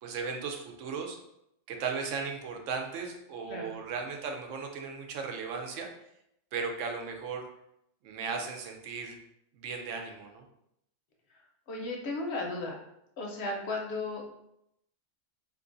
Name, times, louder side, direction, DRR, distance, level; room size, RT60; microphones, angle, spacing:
voice 1, 0.0-1.2 1.7-5.9 6.5-7.4 8.0-9.2 9.5-10.4, right 5 dB, 80° right, 3 dB, 0.9 m, -36 dB
voice 2, 11.7-12.8 13.2-14.4, left 2 dB, 65° left, 0 dB, 0.8 m, -35 dB
2.6 x 2.6 x 3.7 m, 0.79 s
omnidirectional pair, 1.3 m